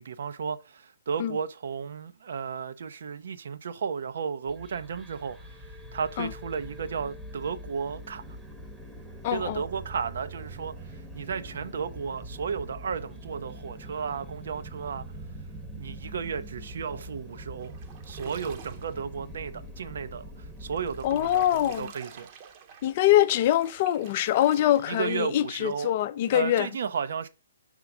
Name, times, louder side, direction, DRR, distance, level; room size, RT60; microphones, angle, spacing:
voice 1, 0.0-8.2 9.3-15.1 15.8-17.8 18.1-22.3 24.9-25.9 26.3-27.3, right 6 dB, 60° right, 0.7 m, -34 dB
sound 1, 4.4-21.9, right 1 dB, 5° right, 1.0 m, -43 dB
voice 2, 9.2-9.6 21.0-21.9 22.8-26.7, left 12 dB, 40° left, 0.5 m, -24 dB
sound 2, 17.6-19.0 20.6-25.3, right 7 dB, 35° right, 1.0 m, -49 dB
5.8 x 3.7 x 6.0 m
figure-of-eight pair, 125°, 0 cm